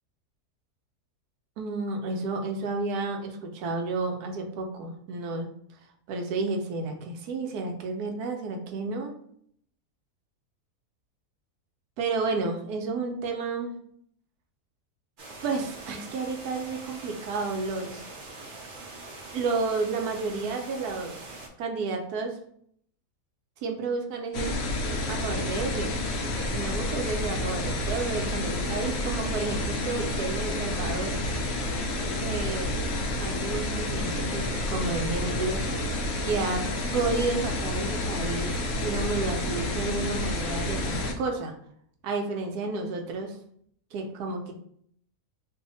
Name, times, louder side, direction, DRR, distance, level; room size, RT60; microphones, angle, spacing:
voice 1, 1.6-5.5 6.1-9.2 12.0-13.7 15.4-18.0 19.3-21.3 21.6-22.4 23.6-24.5 25.1-26.0 26.5-31.2 32.2-32.7 33.2-35.9 36.2-41.6 42.0-43.4 43.9-44.5, right 3 dB, 80° right, 4 dB, 1.1 m, -31 dB
sound 1, 15.2-21.5, right 2 dB, 55° right, 0.6 m, -43 dB
sound 2, 24.3-41.1, left 1 dB, 80° left, 0.5 m, -29 dB
2.7 x 2.5 x 3.9 m, 0.65 s
omnidirectional pair, 1.6 m